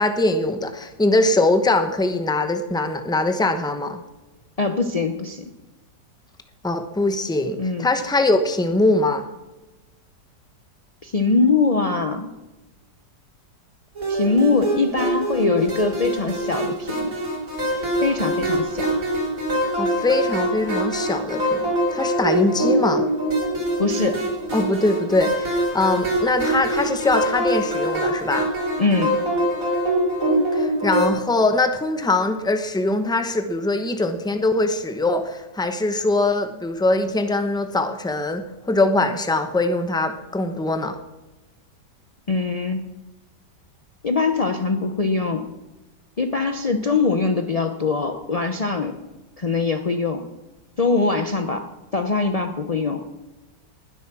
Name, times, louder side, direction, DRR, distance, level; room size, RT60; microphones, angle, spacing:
voice 1, 0.0-4.0 6.6-9.2 19.8-23.0 24.5-28.5 30.5-41.0, left 2 dB, 5° left, 8 dB, 0.6 m, -22 dB
voice 2, 4.6-5.4 7.6-7.9 11.0-12.3 14.1-17.1 18.0-18.9 23.8-24.2 28.8-29.1 42.3-42.9 44.0-45.5 46.2-48.9 49.4-50.2 50.8-51.6 51.9-53.0, left 4 dB, 60° left, 6 dB, 0.4 m, -22 dB
sound 1, 14.0-31.1, right 1 dB, 50° right, 4.0 m, -24 dB
20.0 x 8.0 x 6.1 m, 1.1 s
omnidirectional pair, 1.8 m